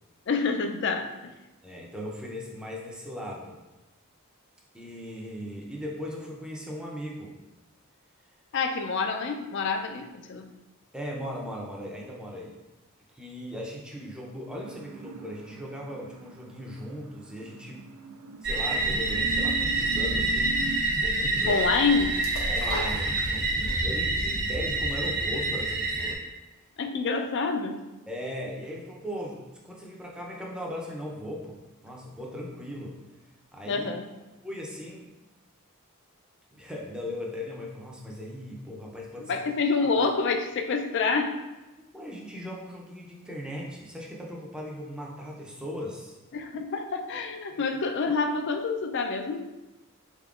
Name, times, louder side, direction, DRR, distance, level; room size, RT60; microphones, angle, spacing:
voice 1, 0.3-1.3 8.5-10.5 21.5-22.2 26.8-27.8 33.7-34.1 39.3-41.4 46.3-49.5, left 4 dB, 50° left, 6 dB, 0.4 m, -27 dB
voice 2, 1.6-3.6 4.7-7.4 10.9-12.6 13.1-17.8 18.4-20.5 21.0-21.7 22.5-26.2 28.1-33.0 33.5-33.9 34.4-35.1 36.5-39.4 39.8-39.9 41.9-46.2 47.5-47.6, equal, 5° right, -2 dB, 0.5 m, -38 dB
sound 1, 14.5-20.8, right 5 dB, 85° right, 0.3 m, -41 dB
sound 2, 18.4-26.1, right 2 dB, 50° right, 0.6 m, -27 dB
sound 3, 22.2-23.8 24.1-24.2, left 1 dB, 75° left, 0.9 m, -36 dB
3.8 x 3.6 x 2.4 m, 1.1 s
head